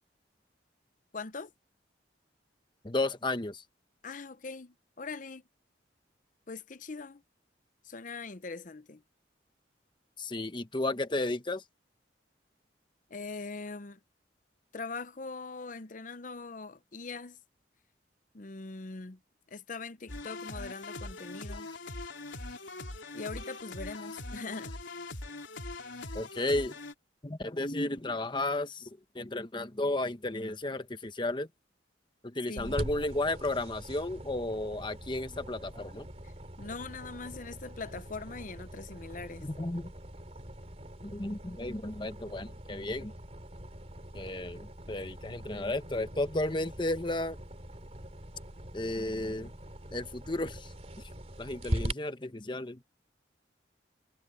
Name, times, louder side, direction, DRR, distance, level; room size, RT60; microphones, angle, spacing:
voice 1, 1.1-1.5 4.0-5.4 6.5-7.2 7.8-9.0 13.1-14.0 14.7-17.4 18.3-19.2 19.5-21.7 23.1-24.7 32.5-32.8 36.6-39.4, left 4 dB, 45° left, 0.7 m, -41 dB
voice 2, 2.8-3.6 10.2-11.6 26.1-26.8 27.2-31.5 32.2-36.1 39.4-39.9 41.0-43.1 44.1-47.4 48.7-49.5 49.9-50.7 51.4-52.8, left 2 dB, 25° left, 1.0 m, -33 dB
sound 1, 20.1-26.9, left 2 dB, 85° left, 3.4 m, -42 dB
sound 2, 32.6-51.9, right 1 dB, 35° right, 3.0 m, -42 dB
head